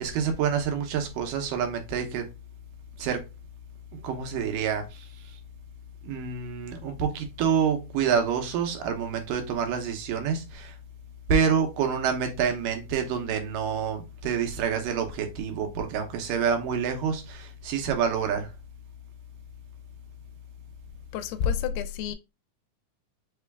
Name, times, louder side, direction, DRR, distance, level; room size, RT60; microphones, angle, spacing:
voice 1, 0.0-2.3 3.0-3.2 3.9-5.0 6.0-10.8 11.3-18.5, right 7 dB, 90° right, 2.5 m, -27 dB
voice 2, 21.1-22.2, left 8 dB, 85° left, 2.1 m, -28 dB
5.5 x 2.3 x 3.4 m
omnidirectional pair, 3.7 m